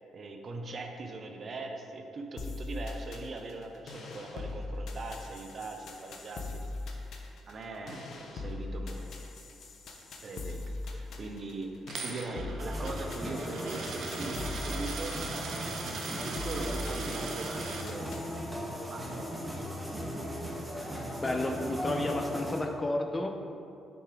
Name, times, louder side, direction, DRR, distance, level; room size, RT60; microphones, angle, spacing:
voice 1, 0.1-6.5 7.5-9.2 10.2-11.7 12.0-18.2 18.9-19.8, right 3 dB, 45° right, 4 dB, 0.7 m, -41 dB
sound 1, 2.4-18.4, left 2 dB, 65° left, 0.9 m, -41 dB
Coin (dropping), 11.9-17.8, right 4 dB, 75° right, 0.9 m, -40 dB
sound 2, 12.6-22.6, equal, 10° right, 1.5 m, -38 dB
voice 2, 21.2-23.3, left 1 dB, 20° left, 3 dB, 0.6 m, -31 dB
6.7 x 6.0 x 3.8 m, 2.5 s
cardioid pair, 90°, 0 cm